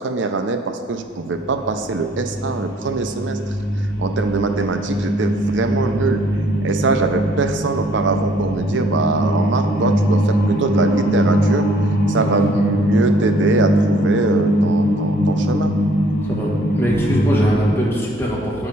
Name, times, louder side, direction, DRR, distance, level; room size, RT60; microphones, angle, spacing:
voice 1, 0.0-6.2 6.6-11.7 12.1-15.7, right 4 dB, 80° right, 7 dB, 0.5 m, -23 dB
sound 1, 1.1-17.7, equal, 50° left, 1.1 m, -20 dB
voice 2, 12.2-12.6 16.2-18.7, equal, 15° left, -6 dB, 1.6 m, -22 dB
9.3 x 4.7 x 5.4 m, 2.1 s
head